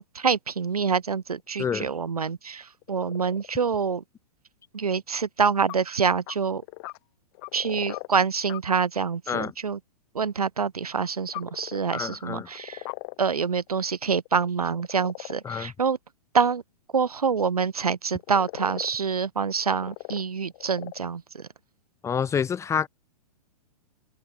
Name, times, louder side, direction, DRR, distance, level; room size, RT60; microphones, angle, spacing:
voice 1, 0.0-4.0 4.7-6.6 7.5-9.8 10.1-12.8 13.2-16.0 16.3-16.6 16.9-21.5, right 6 dB, 70° right, 5.8 m, -26 dB
sound 1, 1.4-1.7 2.8-3.9 5.7-5.8 6.0-7.0 7.3-8.1 8.5-8.6 11.0-12.0 12.4-13.2 13.6-15.4 17.6-17.7 18.2-19.0 19.6-20.2 20.5-21.0, left 28 dB, 40° left, 5.2 m, -39 dB
voice 2, 11.9-12.5 15.5-15.7 22.0-22.9, left 7 dB, 15° left, 1.6 m, -27 dB
figure-of-eight pair, 110°, 20 cm